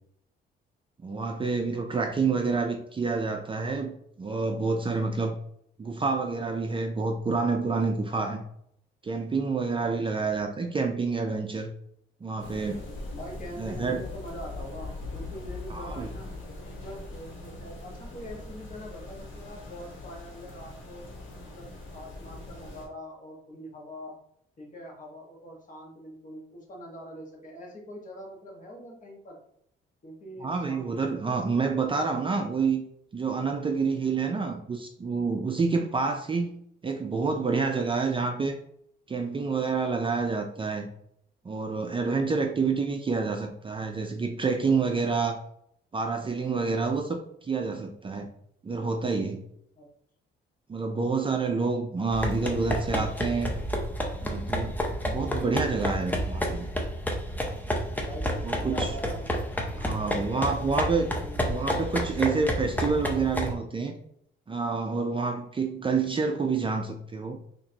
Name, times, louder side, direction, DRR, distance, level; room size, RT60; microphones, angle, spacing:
voice 1, 1.0-5.4 5.8-8.4 9.0-11.7 12.2-12.8 13.6-14.0 15.7-16.1 30.4-32.8 33.1-36.5 36.8-38.5 39.1-40.9 41.4-45.4 45.9-48.3 48.6-49.4 50.7-53.5 54.2-54.8 55.0-56.7 58.4-58.9 59.8-61.1 61.5-63.9 64.5-67.4, right 4 dB, 25° right, 4 dB, 0.5 m, -28 dB
voice 2, 9.9-10.3 13.2-16.3 16.8-21.1 21.5-24.1 24.6-29.4 30.0-31.7 49.8-49.9 50.9-51.0 58.0-59.5 59.7-61.4, equal, 40° left, -1 dB, 1.5 m, -43 dB
sound 1, 12.4-22.8, left 2 dB, 75° left, 1.5 m, -41 dB
sound 2, 52.1-63.5, equal, 10° left, 0.7 m, -30 dB
4.0 x 2.9 x 2.8 m, 0.70 s
cardioid pair, 90°, 20 cm